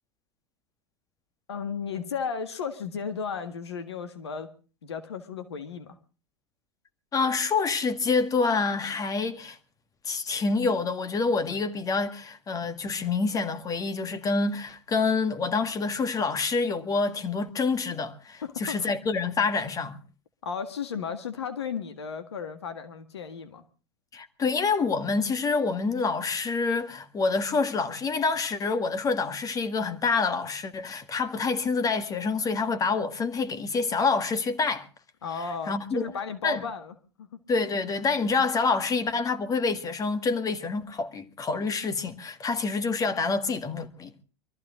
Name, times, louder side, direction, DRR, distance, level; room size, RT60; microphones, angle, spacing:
voice 1, 1.5-4.5 4.8-6.0 18.4-18.9 20.4-23.6 35.2-37.4, left 6 dB, 80° left, 1.7 m, -34 dB
voice 2, 7.1-9.6 10.0-20.0 24.1-34.9 35.7-36.0 36.4-36.6 37.5-44.1, left 4 dB, 25° left, 1.9 m, -27 dB
23.5 x 14.0 x 3.7 m
hypercardioid pair, 90°, 14 cm